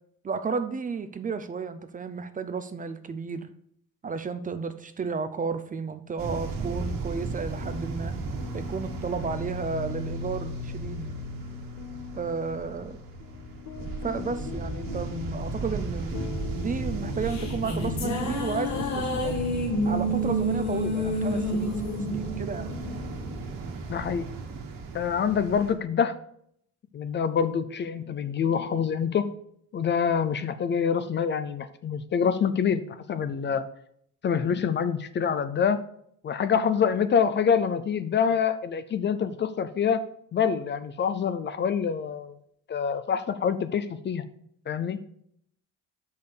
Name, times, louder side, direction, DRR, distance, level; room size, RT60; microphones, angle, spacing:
voice 1, 0.2-3.5 4.0-8.1 8.5-11.1 12.1-13.0 14.0-19.4 19.8-21.8 22.1-22.7, right 5 dB, 25° right, 10 dB, 0.5 m, -33 dB
sound 1, 6.2-25.7, right 3 dB, 80° right, 1.6 m, -36 dB
sound 2, 7.6-23.5, left 7 dB, 80° left, 0.8 m, -40 dB
sound 3, 17.0-23.6, equal, 55° left, 1.5 m, -29 dB
voice 2, 23.9-24.3 24.9-26.2 26.9-29.3 29.7-33.6 34.2-35.8 36.2-40.0 40.3-42.4 42.7-44.2 44.7-45.0, left 7 dB, 35° left, 12 dB, 0.5 m, -26 dB
6.1 x 5.5 x 6.7 m, 0.68 s
cardioid pair, 140°, 33 cm